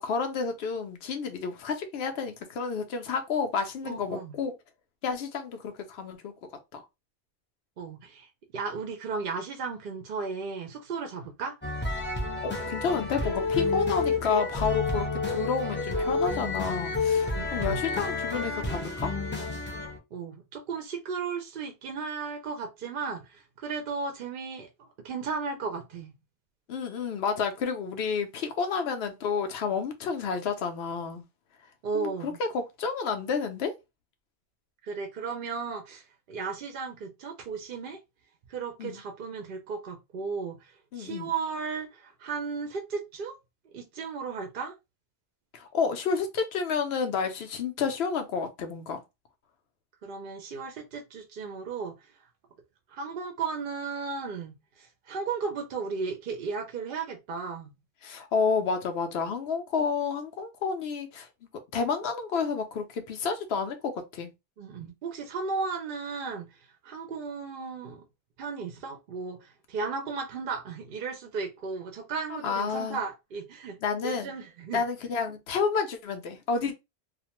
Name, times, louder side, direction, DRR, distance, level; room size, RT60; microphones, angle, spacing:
voice 1, 0.0-4.6 5.0-6.3 6.7-6.8 12.4-19.1 26.7-31.2 31.9-33.7 38.8-39.0 40.9-41.3 45.5-49.0 58.0-61.3 61.7-64.3 72.3-73.0 73.8-74.3 74.7-76.7, left 5 dB, 80° left, 0.9 m, -30 dB
voice 2, 3.8-4.3 7.8-8.3 8.5-11.5 17.3-17.8 20.1-26.1 31.8-32.4 34.8-38.0 38.5-40.6 41.0-43.4 43.7-44.7 50.0-51.9 52.9-57.7 64.6-66.5 66.8-68.0 68.4-73.8 74.0-74.8, right 5 dB, 65° right, 0.7 m, -35 dB
sound 1, 11.6-20.0, left 3 dB, 15° left, 0.5 m, -29 dB
2.4 x 2.1 x 2.9 m
omnidirectional pair, 1.1 m